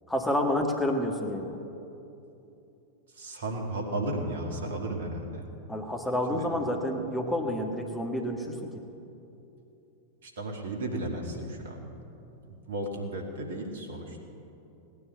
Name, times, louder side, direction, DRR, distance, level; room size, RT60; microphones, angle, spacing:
voice 1, 0.1-1.5 5.7-8.7, left 1 dB, 5° left, 2 dB, 1.6 m, -29 dB
voice 2, 3.1-5.4 6.3-6.5 10.2-11.8 12.5-14.2, right 1 dB, 65° right, 2 dB, 2.3 m, -34 dB
18.0 x 10.0 x 7.7 m, 2.8 s
figure-of-eight pair, 90°, 0 cm